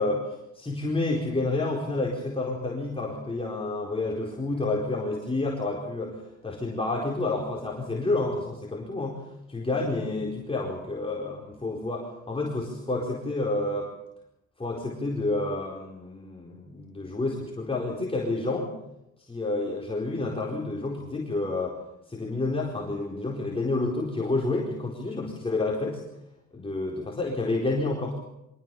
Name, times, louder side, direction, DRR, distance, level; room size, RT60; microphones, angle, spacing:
voice 1, 0.0-6.1 6.4-9.2 9.5-13.9 14.6-18.7 19.3-21.7 22.1-26.0 26.5-28.2, left 2 dB, 20° left, -2 dB, 4.4 m, -29 dB
24.0 x 18.0 x 7.1 m, 0.88 s
cardioid pair, 90°, 30 cm